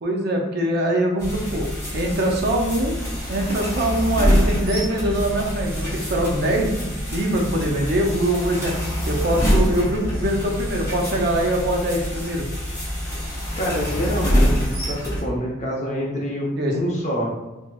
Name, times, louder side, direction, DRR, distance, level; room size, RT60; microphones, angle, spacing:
voice 1, 0.0-1.7 1.9-3.0 3.3-6.7 7.1-8.7 9.1-12.5 16.6-16.7, right 1 dB, 50° right, 1 dB, 0.5 m, -23 dB
sound 1, 1.2-15.2, equal, 15° left, 1.0 m, -25 dB
voice 2, 13.6-17.3, equal, 35° left, -2 dB, 0.6 m, -26 dB
4.3 x 2.0 x 2.2 m, 1.1 s
head